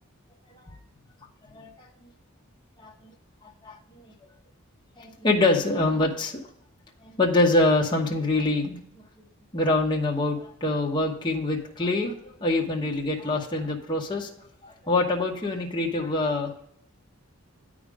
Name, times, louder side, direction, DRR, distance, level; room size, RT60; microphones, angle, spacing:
voice 1, 1.5-1.9 2.8-3.1 3.4-4.1 5.0-6.4 7.0-8.8 9.5-12.1 12.4-14.3 14.6-16.5, left 2 dB, 20° left, -1 dB, 1.0 m, -25 dB
9.4 x 5.0 x 4.9 m, 0.69 s
head